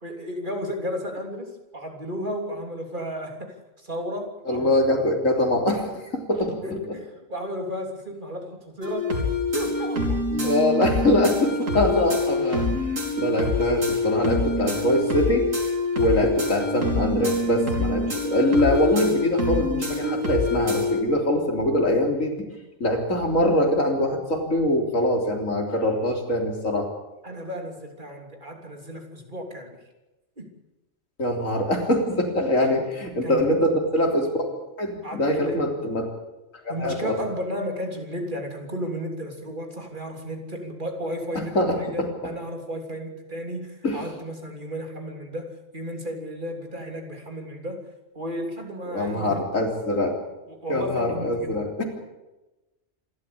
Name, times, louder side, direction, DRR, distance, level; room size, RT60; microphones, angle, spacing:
voice 1, 0.0-4.7 6.6-9.2 9.5-10.5 27.2-29.8 30.4-30.5 32.6-32.8 33.2-33.4 35.0-35.7 36.7-47.8 48.2-49.5 50.5-51.5, equal, 40° right, 3 dB, 3.4 m, -33 dB
voice 2, 4.5-6.8 10.3-12.6 13.2-15.4 15.9-22.5 22.8-26.9 31.2-34.5 34.8-36.1 36.8-37.2 41.3-42.1 43.8-44.0 48.9-50.2 50.7-51.8, left 1 dB, 90° left, 2 dB, 4.0 m, -23 dB
sound 1, 8.8-21.0, left 2 dB, 85° right, 4.4 m, -25 dB
26.5 x 13.0 x 8.6 m, 1.0 s
omnidirectional pair, 1.3 m